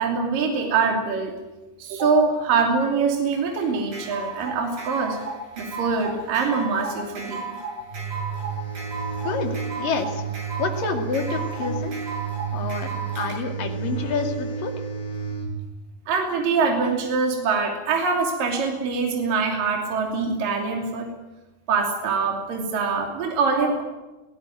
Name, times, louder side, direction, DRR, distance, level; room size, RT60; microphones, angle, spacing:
voice 1, 0.0-1.3 1.8-5.2 5.6-7.5 16.1-21.1 21.7-23.8, right 4 dB, 65° right, 1 dB, 4.5 m, -24 dB
sound 1, 3.3-13.4, right 4 dB, 80° right, 9.7 m, -34 dB
sound 2, 7.9-15.5, right 6 dB, 45° left, 5.3 m, -31 dB
voice 2, 9.2-10.2 10.6-11.9 12.5-14.7, left 5 dB, 65° left, 4 dB, 4.1 m, -28 dB
20.0 x 17.5 x 9.3 m, 1.1 s
omnidirectional pair, 4.3 m